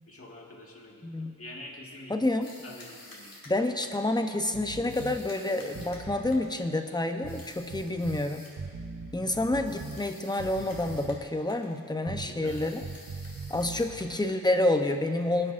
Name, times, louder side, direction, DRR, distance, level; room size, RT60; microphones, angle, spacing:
voice 1, 0.1-2.2 2.6-3.3 12.2-12.7, left 1 dB, 40° left, -1 dB, 1.8 m, -46 dB
voice 2, 1.0-1.3 2.1-2.5 3.5-8.5 9.1-12.8 13.5-15.5, left 1 dB, 10° left, 5 dB, 0.8 m, -28 dB
sound 1, 2.4-4.1 4.9-6.6 7.3-8.7 9.6-11.2 11.5-11.8 12.4-14.4, left 2 dB, 75° left, 2.6 m, -51 dB
sound 2, 4.5-5.2 5.7-6.4 7.2-8.2 8.6-10.0 10.4-11.3 12.1-14.1, right 4 dB, 65° right, 1.0 m, -41 dB
22.5 x 9.9 x 2.6 m, 2.3 s
wide cardioid pair, 100°, 34 cm